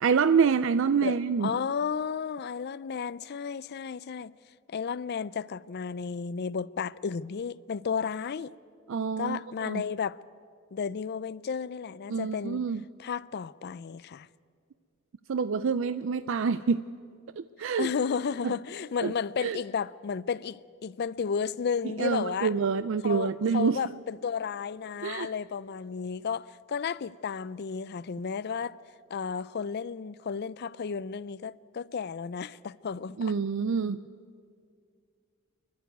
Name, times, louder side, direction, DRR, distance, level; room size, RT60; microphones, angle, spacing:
voice 1, 0.0-1.5 8.9-9.8 12.1-12.8 15.3-16.9 17.4-17.9 19.0-19.1 19.4-19.6 22.0-23.8 25.0-25.3 33.2-34.0, right 5 dB, 60° right, 0.4 m, -27 dB
voice 2, 1.0-4.3 4.7-8.5 9.2-10.2 10.7-12.7 13.0-14.3 17.6-22.5 23.0-28.8 29.1-33.3, left 6 dB, 50° left, 0.4 m, -33 dB
27.0 x 11.5 x 9.2 m
head